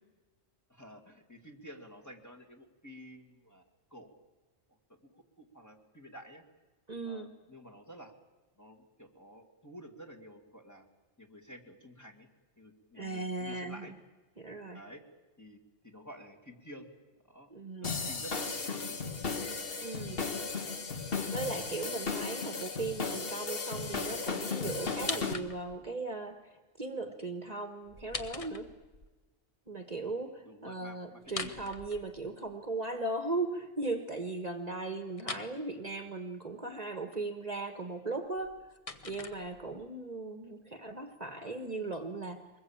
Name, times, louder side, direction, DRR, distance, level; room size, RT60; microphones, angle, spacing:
voice 1, 0.7-3.6 3.9-4.1 5.0-6.4 7.0-8.1 8.6-10.9 11.2-12.3 12.6-13.9 14.7-15.0 15.4-16.9 17.3-17.5 17.8-19.0 19.7-19.9 30.4-31.6, equal, 15° left, 2 dB, 2.3 m, -51 dB
voice 2, 6.9-7.3 12.9-13.9 14.4-14.8 17.5-17.9 19.8-20.2 21.3-28.7 29.7-38.6 39.0-42.4, right 2 dB, 35° right, 7 dB, 1.4 m, -38 dB
sound 1, 17.8-25.3, left 4 dB, 55° left, 1.6 m, -35 dB
the fall of wood, 24.9-25.9 27.9-29.1 31.2-32.5 35.2-35.5 38.2-39.9, left 3 dB, 30° left, 1.1 m, -42 dB
23.5 x 20.5 x 8.7 m, 1.2 s
omnidirectional pair, 1.2 m